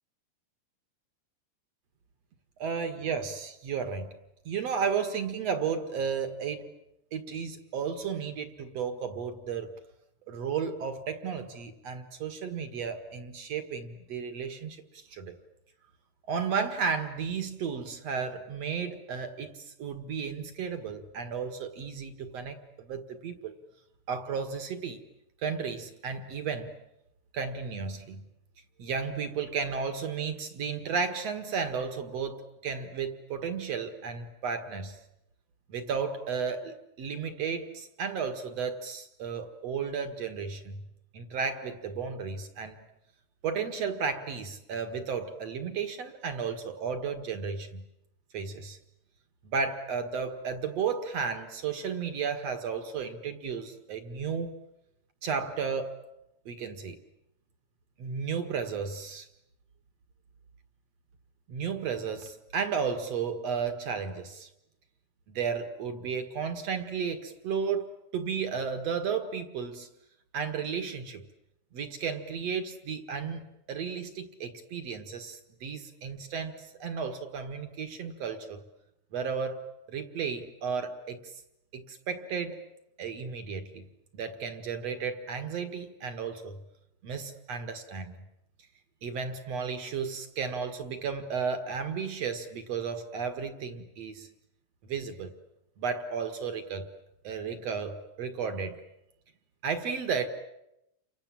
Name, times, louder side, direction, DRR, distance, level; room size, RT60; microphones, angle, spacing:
voice 1, 2.6-4.1 4.5-6.7 7.1-9.7 10.3-15.4 16.3-23.5 24.1-25.0 25.4-26.7 27.3-28.2 28.8-35.0 35.7-40.8 41.1-42.8 43.4-47.8 48.3-48.8 49.4-54.6 55.2-56.0 56.5-57.0 58.0-59.3 61.5-64.5 65.3-69.9 70.3-71.2 71.7-73.4 73.7-78.6 79.1-81.3 81.7-82.6 83.0-83.9 84.1-86.6 87.0-88.2 89.0-94.3 94.8-95.3 95.8-96.9 97.2-98.8 99.6-100.3, right 6 dB, 50° right, 8 dB, 2.2 m, -33 dB
30.0 x 25.5 x 7.6 m, 0.86 s
omnidirectional pair, 4.5 m